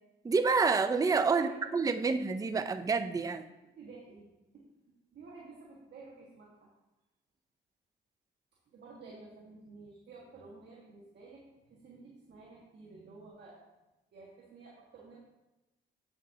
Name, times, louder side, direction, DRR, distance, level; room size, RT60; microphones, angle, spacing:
voice 1, 0.2-3.4, right 4 dB, 15° right, 10 dB, 0.4 m, -28 dB
voice 2, 3.7-4.3 4.5-4.7 5.1-6.7 8.7-13.6 14.1-15.2, right 3 dB, 60° right, -4 dB, 1.6 m, -51 dB
8.3 x 7.4 x 2.8 m, 1.0 s
cardioid pair, 90°, 20 cm